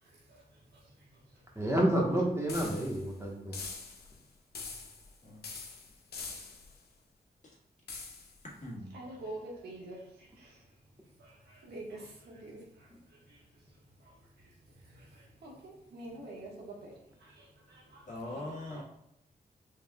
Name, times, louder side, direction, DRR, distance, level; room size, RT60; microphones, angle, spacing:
voice 1, 0.0-1.6 8.9-10.7 11.2-18.1 18.3-18.6, right 2 dB, 90° right, -3 dB, 1.3 m, -48 dB
voice 2, 1.6-3.6, right 1 dB, 15° right, -1 dB, 1.2 m, -29 dB
sound 1, 2.5-3.1 3.5-4.2 4.5-5.1 5.4-6.8 7.9-8.4, left 4 dB, 80° left, 0.8 m, -44 dB
voice 3, 8.6-8.9 18.0-18.8, left 1 dB, 50° left, -4 dB, 1.6 m, -41 dB
5.4 x 3.5 x 2.3 m, 0.78 s
wide cardioid pair, 90°, 16 cm